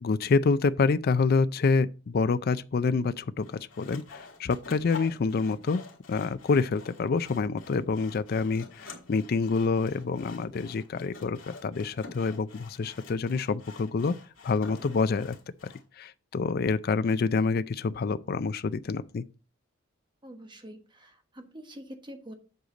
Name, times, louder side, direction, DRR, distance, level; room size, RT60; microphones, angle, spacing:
voice 1, 0.0-3.5 3.8-5.8 6.1-14.1 14.4-15.4 16.0-19.2, left 4 dB, 50° left, 0.4 m, -27 dB
Sawing, 3.4-15.8, left 4 dB, 80° left, 1.9 m, -48 dB
voice 2, 20.2-22.3, equal, 25° right, 1.2 m, -45 dB
8.0 x 6.5 x 3.8 m
head